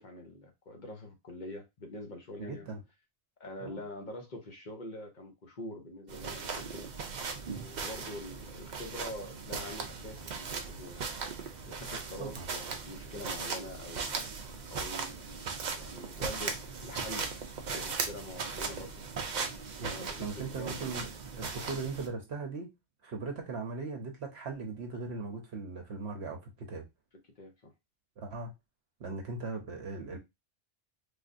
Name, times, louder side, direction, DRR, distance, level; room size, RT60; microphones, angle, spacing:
voice 1, 0.0-2.7 3.4-6.9 7.4-11.1 11.7-14.1 14.7-17.3 17.7-19.0 19.8-20.8 27.4-27.7, left 1 dB, 45° left, 0.9 m, -45 dB
voice 2, 2.4-2.8 3.6-3.8 12.2-12.5 19.8-21.1 21.4-22.7 23.0-26.8 28.2-28.5 29.0-30.2, right 4 dB, 70° right, 1.0 m, -39 dB
sound 1, 6.1-22.1, right 5 dB, 50° right, 0.6 m, -38 dB
3.4 x 2.5 x 2.5 m
omnidirectional pair, 1.1 m